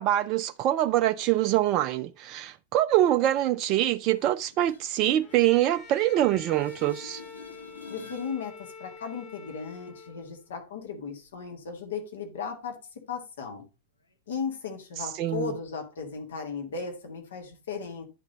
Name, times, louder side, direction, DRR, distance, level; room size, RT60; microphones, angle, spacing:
voice 1, 0.0-7.2 15.1-15.5, right 13 dB, 40° right, 0.3 m, -24 dB
sound 1, 4.1-6.2 6.5-8.4 14.1-14.2, left 4 dB, 80° left, 0.8 m, -49 dB
Bowed string instrument, 5.2-10.5, left 5 dB, 25° left, 0.8 m, -47 dB
voice 2, 7.9-12.8 13.1-13.6 14.3-18.0, left 5 dB, 60° left, 1.6 m, -36 dB
11.0 x 3.8 x 4.1 m
figure-of-eight pair, 90°, 0 cm